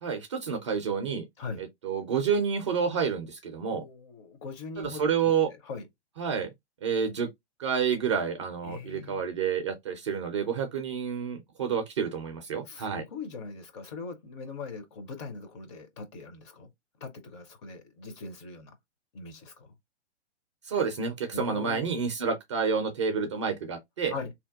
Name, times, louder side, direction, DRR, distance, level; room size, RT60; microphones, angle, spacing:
voice 1, 0.0-1.3 1.6-3.8 4.8-5.5 6.2-6.5 6.8-7.3 7.6-13.0 20.6-24.1, right 6 dB, 25° right, 0.4 m, -29 dB
voice 2, 3.6-5.3 5.6-5.9 8.6-9.2 12.7-16.7 17.0-18.7 19.1-19.7 21.3-21.9 24.1-24.3, left 4 dB, 25° left, 0.6 m, -40 dB
2.8 x 2.2 x 3.4 m
figure-of-eight pair, 115°, 34 cm